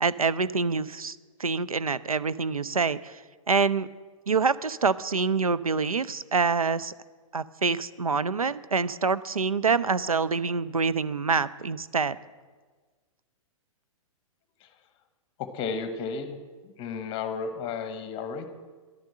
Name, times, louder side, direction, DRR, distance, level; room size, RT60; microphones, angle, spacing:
voice 1, 0.0-3.2 3.5-3.9 4.3-6.9 7.3-12.2, right 4 dB, 90° right, 16 dB, 0.4 m, -26 dB
voice 2, 15.4-16.4 16.6-18.5, left 5 dB, 30° left, 10 dB, 1.0 m, -33 dB
11.0 x 7.7 x 7.5 m, 1.4 s
figure-of-eight pair, 110°, 18 cm